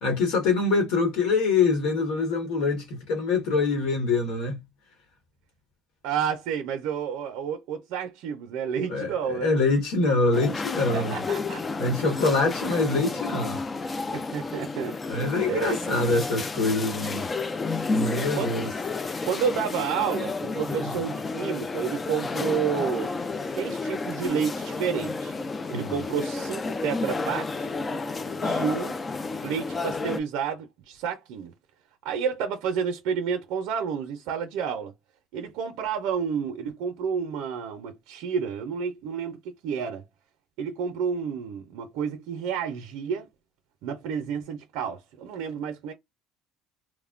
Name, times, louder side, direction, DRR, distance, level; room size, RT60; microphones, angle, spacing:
voice 1, 0.0-4.6 8.9-11.1 11.8-13.6 15.1-17.3 17.9-18.7 20.8-20.9 25.7-25.9, left 3 dB, 75° left, 1.4 m, -25 dB
voice 2, 6.0-9.5 10.9-11.6 11.9-12.0 14.1-15.2 15.5-16.0 18.1-18.5 19.3-23.1 23.5-25.3 25.7-27.7 28.4-29.0 29.4-31.5 32.0-34.9 35.3-40.0 40.6-43.3 43.8-45.9, right 7 dB, 75° right, 0.5 m, -30 dB
sound 1, 10.3-30.2, left 3 dB, 25° left, 0.4 m, -31 dB
3.0 x 2.1 x 2.4 m
cardioid pair, 110°, 0 cm